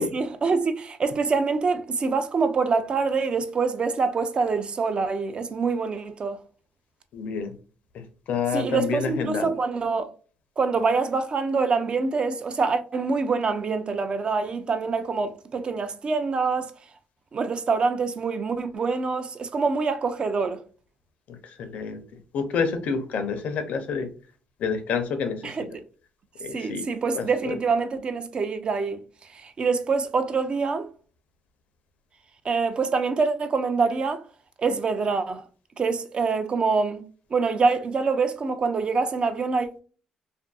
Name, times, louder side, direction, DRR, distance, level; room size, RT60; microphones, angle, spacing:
voice 1, 0.0-6.4 8.5-10.1 10.6-16.7 17.3-20.6 25.4-25.7 26.5-29.0 29.3-30.9 32.4-34.2 34.6-35.4 35.8-37.0 37.3-39.8, right 4 dB, 40° right, 0.4 m, -25 dB
voice 2, 7.1-7.5 7.9-9.5 21.3-22.0 22.3-24.1 24.6-25.5 26.4-26.8 27.1-27.5, left 5 dB, 70° left, 0.6 m, -28 dB
2.6 x 2.5 x 2.3 m
cardioid pair, 85°, 3 cm